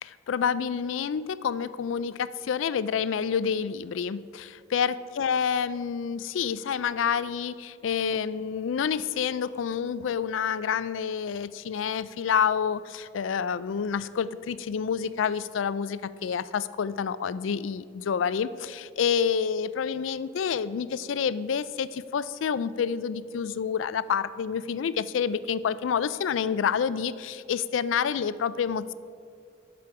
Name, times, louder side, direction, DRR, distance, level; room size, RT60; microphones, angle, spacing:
voice 1, 0.0-28.9, left 7 dB, 75° left, 16 dB, 0.4 m, -28 dB
11.0 x 5.0 x 7.0 m, 2.2 s
head